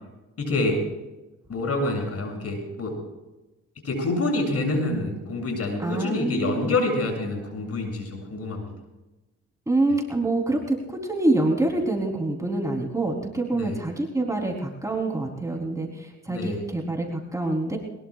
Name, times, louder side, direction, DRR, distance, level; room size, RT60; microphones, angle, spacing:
voice 1, 0.4-0.8 1.5-3.0 3.8-8.7 13.5-13.8 16.3-16.6, left 2 dB, 50° left, 2 dB, 7.5 m, -27 dB
voice 2, 5.8-6.7 9.7-17.8, right 2 dB, 10° right, -1 dB, 3.7 m, -26 dB
22.5 x 21.5 x 2.5 m, 1.0 s
cardioid pair, 90°, 30 cm